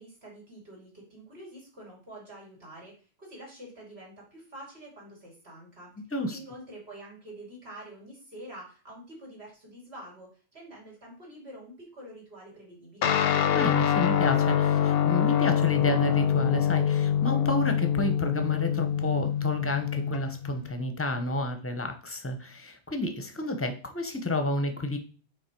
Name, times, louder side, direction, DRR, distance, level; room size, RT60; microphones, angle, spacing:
voice 1, 0.0-5.9 6.3-13.1, right 1 dB, 70° right, -3 dB, 3.1 m, -47 dB
Guitar, 13.0-20.7, left 9 dB, 70° left, 0.8 m, -25 dB
voice 2, 13.5-25.0, left 2 dB, 15° left, 6 dB, 0.7 m, -30 dB
5.7 x 4.4 x 4.4 m, 0.37 s
omnidirectional pair, 1.1 m